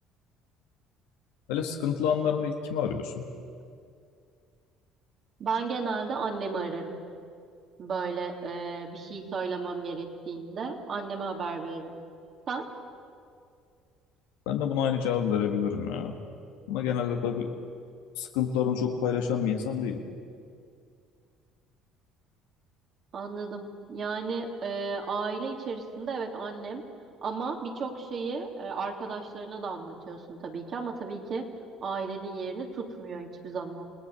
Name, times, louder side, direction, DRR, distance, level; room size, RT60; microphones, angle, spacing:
voice 1, 1.5-3.2 14.4-16.2 16.7-17.5 18.2-20.0, left 8 dB, 90° left, 2 dB, 1.7 m, -28 dB
voice 2, 5.4-7.0 7.8-12.0 12.5-12.7 23.1-26.8 27.2-31.5 31.8-33.8, right 4 dB, 50° right, 1 dB, 3.0 m, -34 dB
28.0 x 17.5 x 6.9 m, 2.3 s
supercardioid pair, 95°, 0 cm